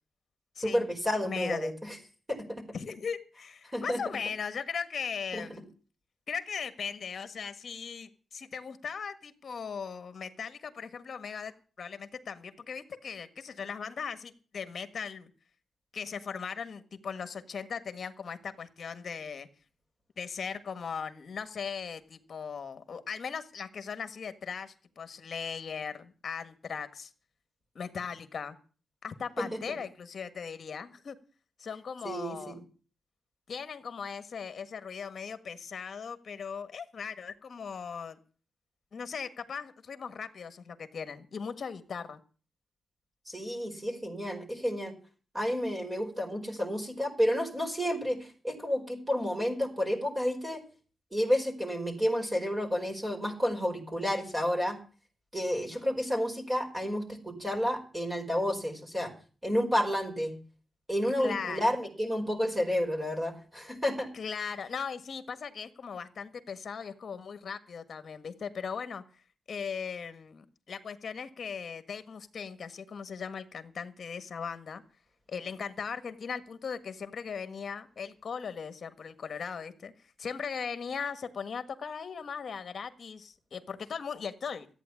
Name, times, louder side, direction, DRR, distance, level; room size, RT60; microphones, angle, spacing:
voice 1, 0.6-2.0 2.3-2.6 3.7-4.0 5.3-5.4 29.4-29.6 32.0-32.6 43.3-44.9 45.3-50.6 51.1-54.8 55.3-59.1 59.4-60.3 60.9-64.1, equal, 15° right, 1 dB, 4.7 m, -30 dB
voice 2, 1.2-1.7 2.7-5.7 6.3-15.3 15.9-19.5 20.2-27.1 27.7-28.6 29.0-31.2 31.6-32.6 33.5-38.2 38.9-42.2 55.7-55.8 61.2-61.7 64.1-69.0 69.5-74.8 75.3-79.9 80.2-84.7, left 6 dB, 50° left, 11 dB, 1.6 m, -38 dB
14.5 x 9.1 x 8.5 m, 0.39 s
wide cardioid pair, 130°, 0 cm